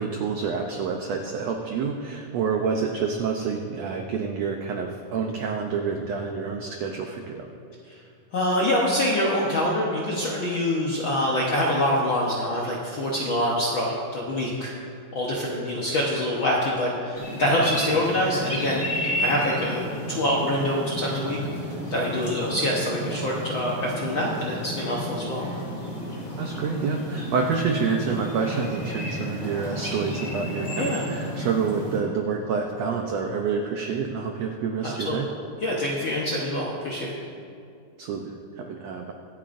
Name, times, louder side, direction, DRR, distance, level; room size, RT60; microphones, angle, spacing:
voice 1, 0.0-7.5 26.4-35.3 38.0-39.1, right 5 dB, 90° right, 2 dB, 1.4 m, -28 dB
voice 2, 8.3-14.7 15.1-18.8 19.2-21.4 21.9-25.4 30.8-31.1 34.8-35.2 35.6-37.2, left 1 dB, 80° left, -4 dB, 1.1 m, -25 dB
sound 1, 17.2-32.0, equal, 25° left, 2.7 m, -32 dB
24.5 x 8.8 x 2.6 m, 2.4 s
omnidirectional pair, 3.9 m